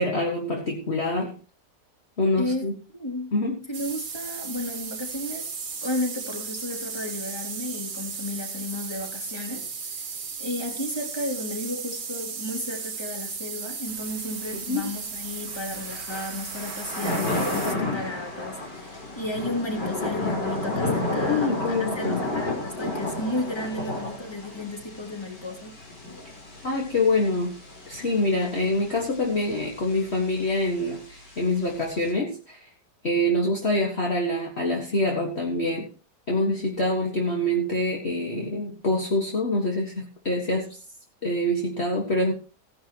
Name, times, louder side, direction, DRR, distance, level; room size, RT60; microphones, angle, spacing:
voice 1, 0.0-1.4 2.2-2.7 3.3-3.6 14.5-14.9 21.3-22.3 26.6-27.5 27.9-32.7 33.0-35.9 36.3-40.8 41.2-42.3, left 1 dB, 40° left, 0 dB, 2.0 m, -25 dB
voice 2, 2.9-3.3 3.7-5.5 5.8-10.1 10.4-25.8, left 1 dB, 15° left, 1 dB, 3.0 m, -33 dB
sound 1, 3.7-17.7, right 5 dB, 50° right, 1.7 m, -35 dB
Thunder / Rain, 13.9-32.1, left 2 dB, 80° left, 5.2 m, -33 dB
16.5 x 11.0 x 3.0 m, 0.36 s
omnidirectional pair, 1.9 m